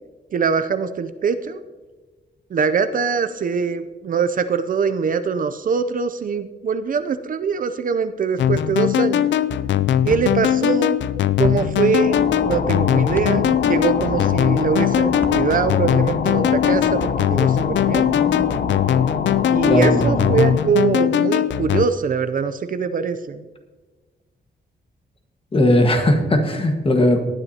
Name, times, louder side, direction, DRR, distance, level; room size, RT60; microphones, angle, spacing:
voice 1, 0.3-1.6 2.5-9.2 10.0-11.0 11.4-18.1 19.5-23.4, right 6 dB, 50° right, 10 dB, 0.5 m, -23 dB
sound 1, 8.4-21.9, left 10 dB, 85° left, 0.4 m, -20 dB
sound 2, 10.1-10.3 11.4-11.6 13.1-13.3 15.1-15.4, equal, 10° left, 1.0 m, -30 dB
sound 3, 11.9-20.7, left 5 dB, 55° left, 0.9 m, -26 dB
voice 2, 19.6-20.3 25.5-27.2, left 1 dB, 30° left, 4 dB, 1.5 m, -17 dB
19.0 x 9.8 x 2.8 m, 1.3 s
wide cardioid pair, 145°, 18 cm